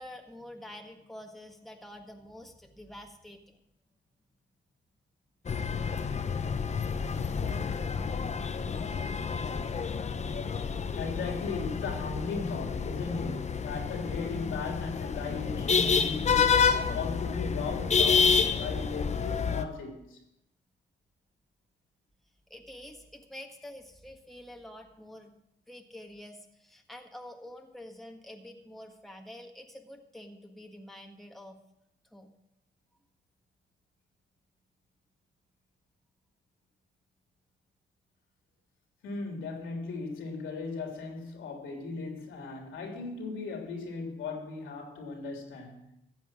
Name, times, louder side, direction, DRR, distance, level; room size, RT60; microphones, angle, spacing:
voice 1, 0.0-3.6 22.5-25.3 25.7-31.6 32.1-32.3, left 1 dB, ahead, 1.7 m, -47 dB
sound 1, 5.5-19.6, left 6 dB, 35° left, 0.9 m, -29 dB
voice 2, 11.0-20.2 39.0-45.9, left 4 dB, 80° left, 3.5 m, -37 dB
15.0 x 7.8 x 6.2 m
cardioid pair, 90°, 20 cm